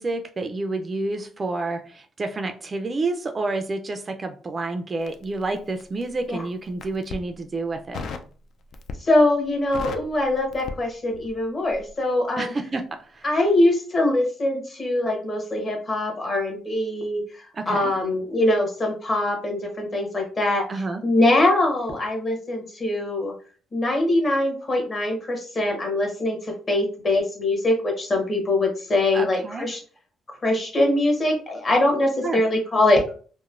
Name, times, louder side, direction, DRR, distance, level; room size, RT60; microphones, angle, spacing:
voice 1, 0.0-8.0 12.4-12.8 13.1-13.3 17.5-17.9 20.7-21.0 29.1-29.7 32.2-32.4, right 3 dB, 35° right, 6 dB, 0.3 m, -29 dB
Crackle, 5.0-6.1 6.7-7.3 7.9-8.3 8.7-9.2 9.5-11.4 11.7-11.9, left 4 dB, 65° left, 0.3 m, -36 dB
voice 2, 9.0-12.5 13.2-20.6 21.0-23.3 23.7-29.8 30.4-33.1, left 1 dB, 35° left, 2 dB, 1.0 m, -23 dB
3.0 x 2.0 x 2.4 m, 0.41 s
cardioid pair, 90°, 0 cm